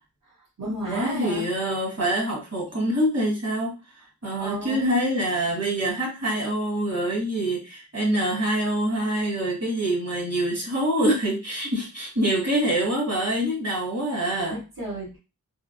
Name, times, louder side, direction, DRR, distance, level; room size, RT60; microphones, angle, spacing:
voice 1, 0.2-1.5 4.4-4.9 14.4-15.2, right 1 dB, 70° right, -11 dB, 1.6 m, -33 dB
voice 2, 0.8-3.7 4.2-14.6, right 1 dB, 50° right, -4 dB, 1.7 m, -25 dB
3.6 x 2.0 x 2.6 m, 0.30 s
wide cardioid pair, 90°, 34 cm